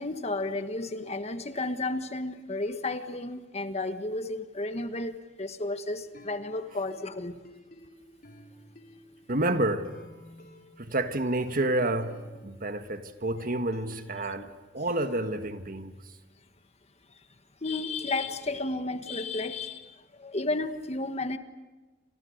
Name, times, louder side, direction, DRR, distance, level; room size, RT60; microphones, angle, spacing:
voice 1, 0.0-7.4 17.6-21.4, left 2 dB, 35° left, 1.4 m, -32 dB
sound 1, 6.0-13.3 13.7-15.0, equal, 55° left, 4.0 m, -53 dB
voice 2, 9.3-9.9 10.8-15.9, right 1 dB, 50° right, 1.7 m, -29 dB
29.5 x 27.0 x 6.6 m
head